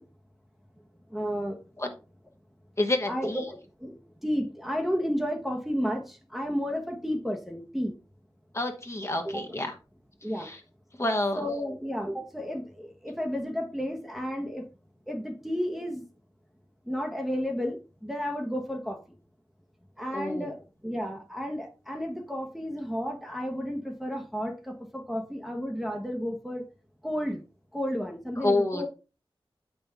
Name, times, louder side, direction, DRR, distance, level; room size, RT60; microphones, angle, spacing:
voice 1, 1.1-1.6 3.1-4.0 4.2-6.0 6.3-7.9 9.2-9.4 10.2-10.5 11.3-14.6 15.1-16.0 16.9-19.0 20.0-20.6 20.8-26.6 27.0-27.4 27.7-28.9, equal, ahead, 1.1 m, -32 dB
voice 2, 2.8-3.5 8.5-9.7 10.4-10.6 11.0-11.5 20.1-20.5 28.4-28.9, left 2 dB, 30° left, 1.2 m, -28 dB
7.7 x 5.7 x 3.5 m
wide cardioid pair, 75°, 9 cm